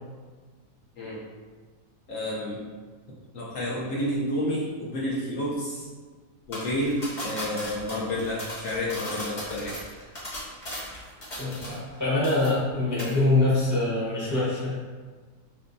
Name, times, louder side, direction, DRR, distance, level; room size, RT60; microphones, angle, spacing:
voice 1, 2.1-2.6 3.3-5.9 6.5-9.8, left 1 dB, 60° left, -6 dB, 1.0 m, -30 dB
sound 1, 6.5-12.0 12.2-12.7 13.0-13.2, left 1 dB, 35° left, 1.0 m, -37 dB
voice 2, 11.4-14.8, left 2 dB, 15° right, -8 dB, 0.6 m, -24 dB
6.0 x 2.0 x 2.6 m, 1.4 s
omnidirectional pair, 1.8 m